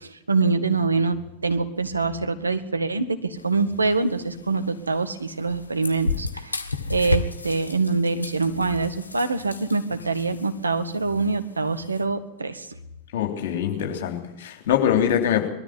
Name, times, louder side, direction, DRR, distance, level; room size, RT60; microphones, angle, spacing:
voice 1, 0.0-6.6 6.9-12.7, right 3 dB, 80° right, 10 dB, 1.7 m, -25 dB
sound 1, 3.4-12.0, left 3 dB, 80° left, 1.4 m, -34 dB
voice 2, 13.1-15.5, left 9 dB, 55° left, 3 dB, 3.4 m, -23 dB
21.0 x 13.5 x 9.6 m, 0.89 s
figure-of-eight pair, 90°, 0 cm